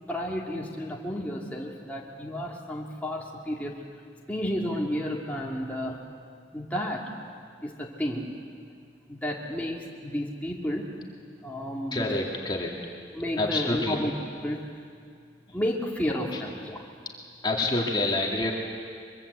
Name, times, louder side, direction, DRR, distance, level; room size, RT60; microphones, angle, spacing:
voice 1, 0.1-3.7 4.3-6.0 6.5-7.0 7.6-8.3 9.1-10.9 11.4-12.2 13.1-14.1 14.4-14.6 15.5-16.8, equal, 10° left, -3 dB, 2.3 m, -31 dB
voice 2, 11.9-12.8 13.4-14.0 15.5-15.6 16.3-16.4 17.4-18.5, left 2 dB, 25° left, -1 dB, 2.2 m, -27 dB
24.0 x 23.5 x 8.0 m, 2.2 s
head